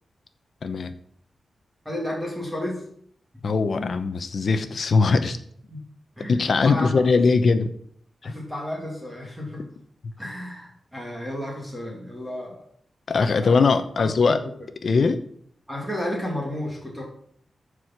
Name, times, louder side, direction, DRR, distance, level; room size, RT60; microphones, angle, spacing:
voice 1, 0.6-0.9 3.4-5.4 6.3-7.7 8.2-8.3 13.1-14.4 14.8-15.2, left 4 dB, 50° left, 10 dB, 0.9 m, -21 dB
voice 2, 1.8-2.8 4.6-4.7 5.7-5.8 6.2-7.0 8.2-9.6 10.2-12.6 13.4-13.6 14.0-14.3 15.7-17.0, left 1 dB, 5° right, -2 dB, 2.5 m, -32 dB
14.0 x 4.9 x 6.0 m, 0.63 s
wide cardioid pair, 170°, 0 cm